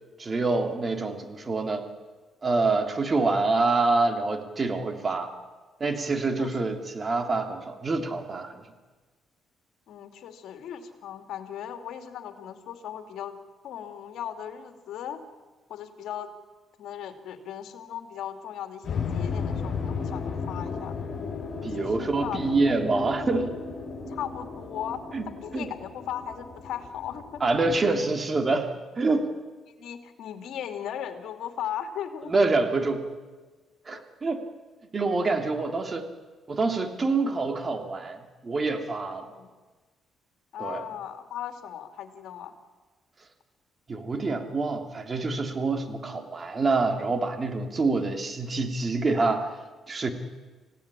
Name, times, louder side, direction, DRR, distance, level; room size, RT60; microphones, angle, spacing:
voice 1, 0.2-1.9 2.4-5.3 5.8-8.6 21.6-23.5 25.1-25.3 25.5-25.7 27.4-29.3 32.3-33.1 33.9-34.4 34.9-36.1 36.5-39.3 40.6-40.8 43.9-49.5 49.9-50.1, right 3 dB, 35° right, 6 dB, 3.1 m, -26 dB
voice 2, 9.9-13.3 13.6-15.2 15.7-16.3 16.8-21.0 21.8-22.5 24.1-25.0 25.4-27.4 29.8-32.3 33.9-34.0 39.2-39.5 40.5-42.5, left 9 dB, 75° left, 6 dB, 2.7 m, -37 dB
sound 1, 18.8-27.8, left 5 dB, 50° left, 6.8 m, -34 dB
26.5 x 17.0 x 9.9 m, 1.3 s
cardioid pair, 90°, 0 cm